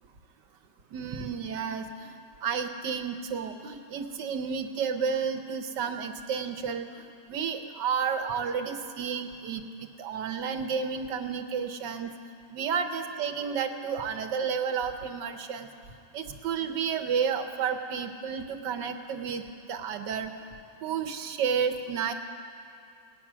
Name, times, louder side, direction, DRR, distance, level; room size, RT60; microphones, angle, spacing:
voice 1, 0.9-12.1 12.5-15.7 16.1-20.3 20.8-22.1, right 6 dB, 80° right, 7 dB, 1.5 m, -31 dB
18.5 x 9.3 x 6.1 m, 2.4 s
omnidirectional pair, 1.9 m